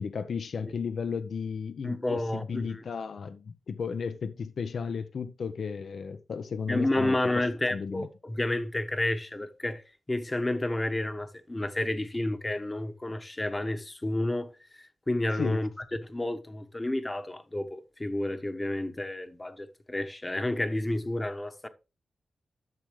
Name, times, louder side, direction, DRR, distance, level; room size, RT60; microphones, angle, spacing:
voice 1, 0.0-7.4 7.7-8.1 15.4-15.6, left 6 dB, 65° left, 0.6 m, -34 dB
voice 2, 1.8-2.8 6.7-9.8 10.1-15.7 16.0-21.7, left 1 dB, 20° left, 1.0 m, -30 dB
12.0 x 6.4 x 3.1 m
cardioid pair, 75°, 0 cm